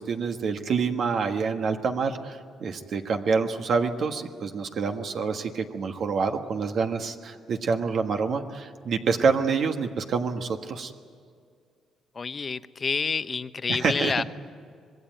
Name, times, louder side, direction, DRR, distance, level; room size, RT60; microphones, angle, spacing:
voice 1, 0.0-10.9 13.7-14.1, right 5 dB, 60° right, 5 dB, 1.4 m, -27 dB
voice 2, 12.1-14.2, left 5 dB, 35° left, 12 dB, 0.9 m, -28 dB
25.5 x 20.5 x 9.1 m, 2.2 s
cardioid pair, 90°, 0 cm